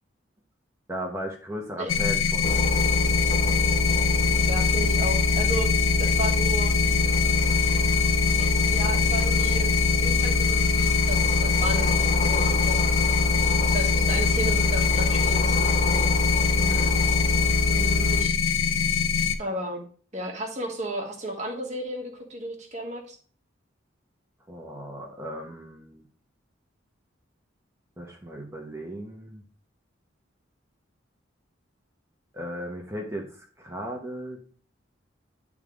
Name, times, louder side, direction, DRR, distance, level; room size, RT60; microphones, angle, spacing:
voice 1, 0.9-2.5 16.5-16.9 24.5-26.0 28.0-29.4 32.3-34.5, equal, 15° right, 0 dB, 1.0 m, -36 dB
sound 1, 1.9-19.3, left 6 dB, 80° left, 0.7 m, -24 dB
sound 2, 2.4-18.2, left 1 dB, 40° left, 0.7 m, -25 dB
voice 2, 4.5-5.7 6.0-6.8 8.4-9.7 10.0-12.8 13.7-16.1 17.7-18.3 19.4-19.8 20.1-23.1, right 1 dB, 35° right, 1 dB, 1.4 m, -34 dB
10.5 x 3.6 x 3.7 m, 0.43 s
head